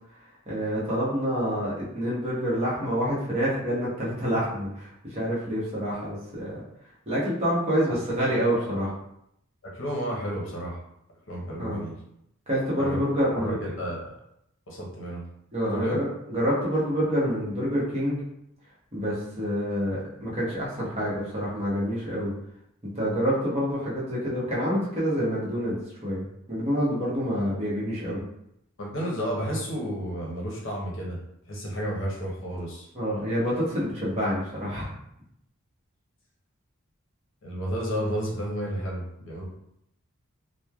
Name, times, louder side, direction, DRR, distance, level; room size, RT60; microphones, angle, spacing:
voice 1, 0.5-6.5 7.1-8.9 11.6-11.8 12.5-13.7 15.5-18.2 18.9-22.3 22.8-25.8 26.0-28.2 32.9-34.9, equal, 30° right, -7 dB, 0.8 m, -27 dB
voice 2, 9.6-10.8 11.3-12.0 12.8-14.2 14.7-15.2 15.7-16.0 28.8-31.2 31.5-32.9 37.4-39.5, equal, 60° left, -3 dB, 0.7 m, -32 dB
3.0 x 2.1 x 2.3 m, 0.77 s
head